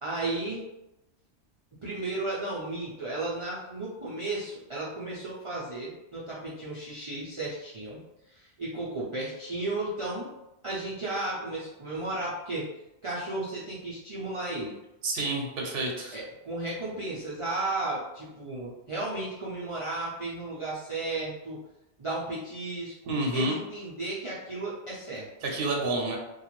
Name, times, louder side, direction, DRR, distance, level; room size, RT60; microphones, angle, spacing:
voice 1, 0.0-0.6 1.8-8.0 8.3-10.3 10.6-12.7 13.0-14.8 16.1-21.6 22.0-25.3, right 2 dB, 50° right, -8 dB, 0.4 m, -34 dB
voice 2, 15.0-16.2 23.1-23.6 25.4-26.2, right 2 dB, 70° right, 0 dB, 0.8 m, -29 dB
2.4 x 2.2 x 3.0 m, 0.94 s
omnidirectional pair, 1.1 m